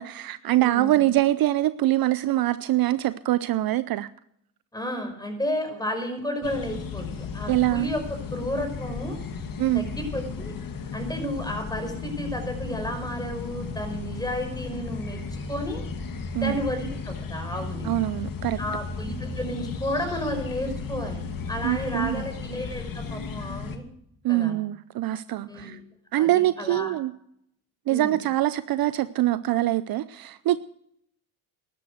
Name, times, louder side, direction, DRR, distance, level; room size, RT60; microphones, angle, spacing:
voice 1, 0.0-4.1 7.5-7.9 9.6-9.8 16.3-16.6 17.8-18.6 21.6-22.2 24.2-25.8 26.1-27.1 27.9-30.6, right 15 dB, 55° right, 15 dB, 0.7 m, -24 dB
voice 2, 0.6-1.0 4.7-8.0 8.3-9.2 9.7-10.5 10.9-15.8 16.4-17.9 18.6-23.8 24.3-24.6 25.5-25.8 26.1-26.9 27.9-28.2, equal, 10° left, 5 dB, 5.5 m, -32 dB
sound 1, 6.4-23.8, left 4 dB, 50° left, 1.9 m, -34 dB
13.0 x 11.5 x 6.4 m, 0.70 s
supercardioid pair, 65°, 43 cm